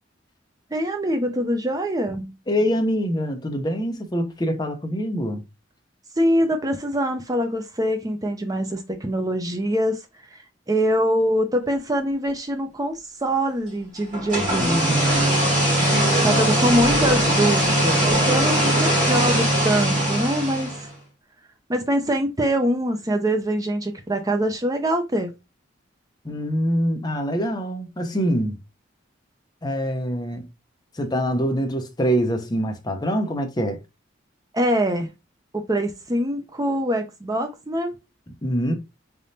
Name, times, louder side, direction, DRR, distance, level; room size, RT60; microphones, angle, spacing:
voice 1, 0.7-2.4 6.2-10.0 10.3-10.4 10.7-15.1 16.2-20.9 21.7-25.3 34.5-35.1 35.5-37.9, equal, 20° right, 0.5 m, -24 dB
voice 2, 2.5-5.4 15.8-16.8 26.2-28.6 29.6-30.5 30.9-33.8 38.4-38.7, equal, 20° left, 0.7 m, -25 dB
sound 1, 14.1-20.9, right 1 dB, 45° right, 2.3 m, -20 dB
3.9 x 3.5 x 2.7 m
head